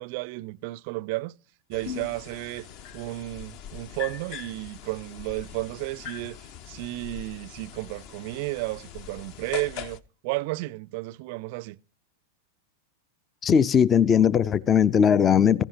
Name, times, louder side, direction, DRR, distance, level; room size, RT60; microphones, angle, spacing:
voice 1, 0.0-1.4 1.7-2.7 2.9-6.4 6.7-11.8, right 21 dB, 45° right, 0.5 m, -33 dB
sound 1, 1.7-10.0, left 8 dB, 45° left, 0.9 m, -41 dB
voice 2, 13.4-15.6, left 7 dB, 25° left, 0.5 m, -19 dB
16.5 x 15.5 x 2.8 m
figure-of-eight pair, 90°, 0 cm